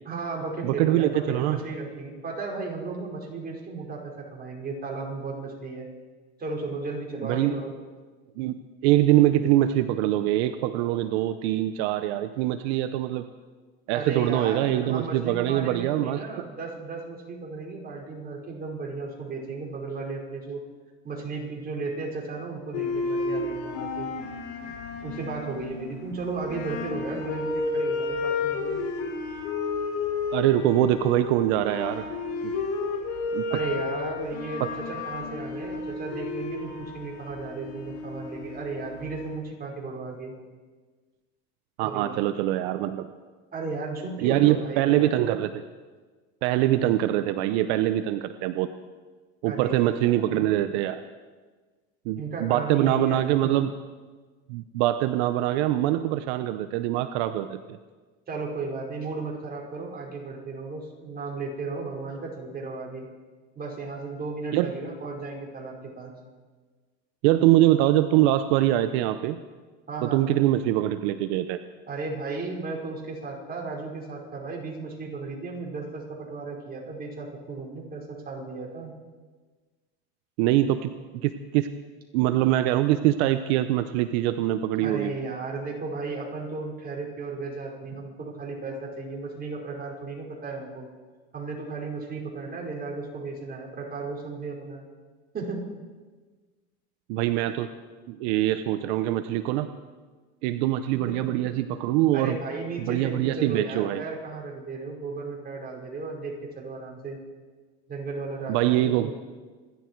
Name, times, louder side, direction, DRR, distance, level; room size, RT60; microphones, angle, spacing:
voice 1, 0.0-5.9 6.4-7.7 13.9-20.6 21.0-24.1 25.0-28.8 33.5-40.3 41.8-42.2 43.5-45.1 49.4-50.4 52.2-53.2 58.3-63.1 63.5-66.1 69.9-70.3 71.9-78.9 84.8-90.9 91.3-94.8 95.3-95.7 101.2-101.3 102.1-107.2 107.9-109.1, right 3 dB, 30° right, -1 dB, 4.9 m, -35 dB
voice 2, 0.6-1.6 7.2-7.5 8.4-8.5 8.8-13.2 13.9-16.2 30.3-32.0 32.4-32.5 33.3-33.4 34.6-34.7 41.8-43.1 44.2-45.6 46.4-48.7 49.4-51.0 52.1-53.7 54.5-57.8 64.5-64.7 67.2-69.4 70.0-71.6 80.4-80.9 81.2-81.7 82.1-85.1 97.1-97.7 98.1-99.7 100.4-102.4 102.8-104.0 108.5-109.1, right 14 dB, 80° right, 10 dB, 0.8 m, -23 dB
sound 1, 22.7-39.4, left 4 dB, 85° left, 3.7 m, -32 dB
27.0 x 11.5 x 4.6 m, 1.4 s
supercardioid pair, 115°, 32 cm